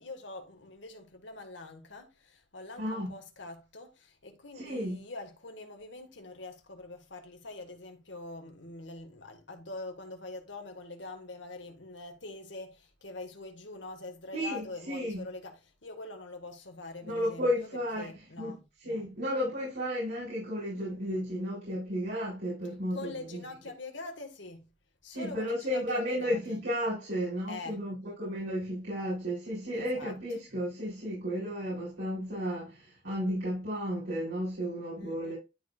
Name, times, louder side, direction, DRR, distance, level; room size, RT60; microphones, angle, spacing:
voice 1, 0.0-2.1 2.5-12.8 13.0-17.5 18.0-18.6 18.8-19.0 22.9-24.7 25.0-26.4 27.5-27.8 29.7-30.1 35.0-35.3, left 2 dB, 85° left, 1.9 m, -44 dB
voice 2, 2.8-3.1 4.5-5.0 14.3-15.2 17.0-23.4 25.1-35.4, equal, 85° right, 4.7 m, -33 dB
12.0 x 4.7 x 2.5 m
head